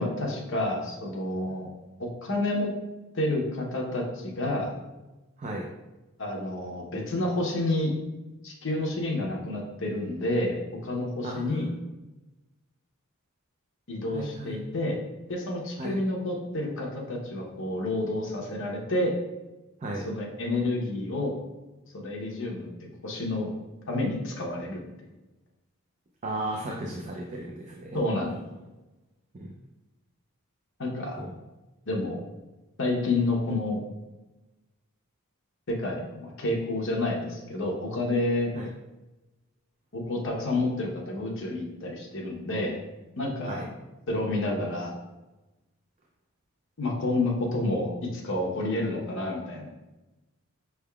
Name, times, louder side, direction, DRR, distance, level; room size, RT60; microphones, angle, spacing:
voice 1, 0.0-1.7 2.0-2.7 3.1-4.7 6.2-7.9 8.4-11.7 13.9-15.0 15.3-19.1 20.0-21.3 21.9-23.5 23.9-24.8 27.9-28.3 30.8-31.2 31.9-32.2 32.8-33.8 35.7-38.5 39.9-42.8 43.2-43.7 44.1-44.9 46.8-49.7, left 2 dB, 55° left, -1 dB, 0.9 m, -29 dB
voice 2, 11.2-11.8 14.1-14.7 15.8-16.0 19.8-20.0 26.2-28.0 29.4-29.5 31.2-31.3 38.5-38.7 43.4-43.6, right 1 dB, 30° right, -1 dB, 0.4 m, -35 dB
5.6 x 3.5 x 2.3 m, 1.1 s
head